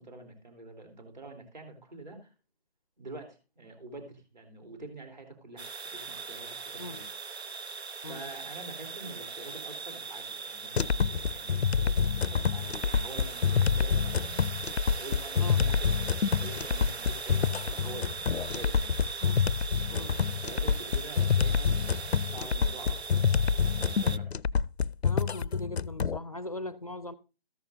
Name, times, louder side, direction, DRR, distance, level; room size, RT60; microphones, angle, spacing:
voice 1, 0.0-2.3 3.0-7.1 8.0-14.4 14.9-18.2 18.5-18.9 19.8-23.3 23.6-24.3, right 2 dB, 45° right, 3.5 m, -46 dB
sound 1, 5.6-24.2, right 4 dB, 80° right, 0.7 m, -40 dB
sound 2, 10.8-26.2, left 6 dB, 85° left, 0.5 m, -27 dB
voice 2, 25.0-27.1, left 2 dB, 35° left, 0.5 m, -39 dB
13.5 x 12.0 x 2.6 m
figure-of-eight pair, 150°, 32 cm